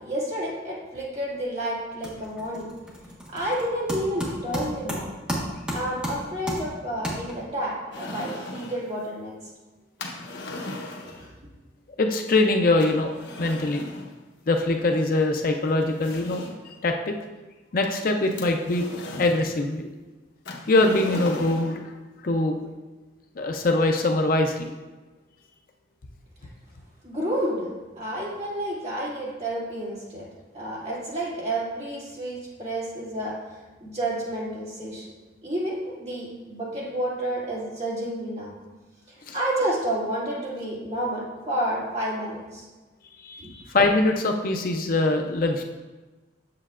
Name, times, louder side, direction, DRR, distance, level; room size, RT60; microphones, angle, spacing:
voice 1, 0.0-2.7 3.3-5.1 5.7-9.3 11.1-11.2 27.0-27.7 28.0-30.3 30.5-35.1 35.4-38.5 39.3-42.7 43.4-43.7, right 1 dB, 35° right, -6 dB, 2.1 m, -30 dB
sound 1, 1.2-1.5 1.8-7.7, equal, 5° right, 1.3 m, -34 dB
sound 2, 7.9-8.9 10.0-11.3 12.8-14.1 15.2-15.3 15.8-16.7 17.8-19.5 20.5-21.8, left 2 dB, 80° left, 0.9 m, -37 dB
voice 2, 12.0-13.1 13.4-13.9 14.5-16.5 16.8-17.1 17.7-18.8 19.2-19.9 20.7-21.8 22.2-22.6 23.4-24.7 39.3-39.4 43.2-43.5 43.7-45.6, left 2 dB, 50° left, 4 dB, 0.5 m, -23 dB
7.7 x 7.3 x 2.4 m, 1.2 s
head